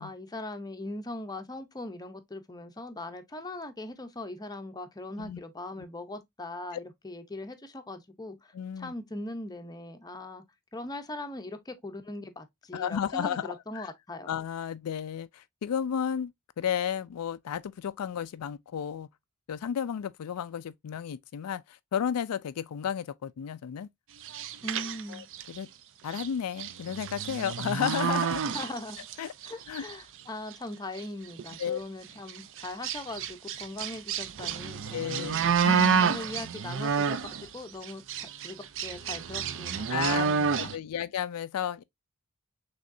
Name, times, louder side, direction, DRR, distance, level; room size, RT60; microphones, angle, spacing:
voice 1, 0.0-10.4 10.7-14.3 24.6-25.2 28.5-29.0 29.5-35.7 36.0-40.7, left 2 dB, 15° left, 0.7 m, -40 dB
voice 2, 8.5-8.9 12.7-13.9 14.3-19.1 19.5-23.9 25.1-25.2 25.5-25.7 26.0-28.5 29.2-29.3 29.7-29.8 31.6-31.8 34.9-36.3 39.9-41.8, left 8 dB, 85° left, 0.4 m, -33 dB
sound 1, 24.2-25.6 26.1-26.3 26.6-29.1 29.4-29.9 30.5-30.6 31.0-31.1 31.4-31.6 32.3-37.5 37.8-40.8, right 6 dB, 60° right, 0.5 m, -29 dB
6.3 x 3.1 x 2.5 m
head